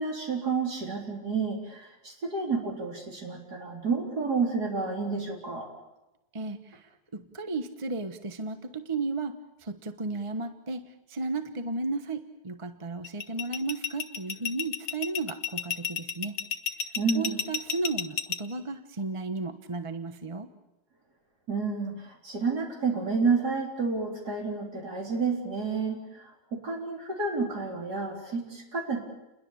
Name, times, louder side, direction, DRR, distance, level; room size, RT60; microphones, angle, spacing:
voice 1, 0.0-5.7 17.0-17.4 21.5-26.2 26.5-29.0, right 4 dB, 60° right, 0 dB, 4.2 m, -30 dB
voice 2, 6.3-6.8 7.1-16.4 17.1-20.5, right 3 dB, 20° right, 8 dB, 0.9 m, -34 dB
sound 1, 13.0-18.4, left 7 dB, 55° left, 1.4 m, -31 dB
29.5 x 21.5 x 7.1 m, 0.98 s
omnidirectional pair, 1.9 m